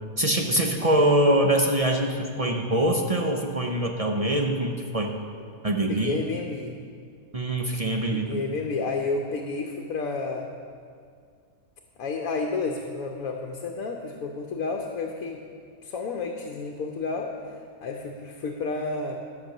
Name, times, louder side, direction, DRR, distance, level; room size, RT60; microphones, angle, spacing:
voice 1, 0.2-5.2 5.6-6.2 7.3-8.4, right 1 dB, 40° right, 2 dB, 0.5 m, -24 dB
voice 2, 5.9-6.8 8.1-10.5 12.0-15.4 15.8-17.4 17.8-19.2, left 4 dB, 70° left, 1 dB, 1.2 m, -31 dB
12.0 x 6.2 x 6.5 m, 2.2 s
omnidirectional pair, 1.6 m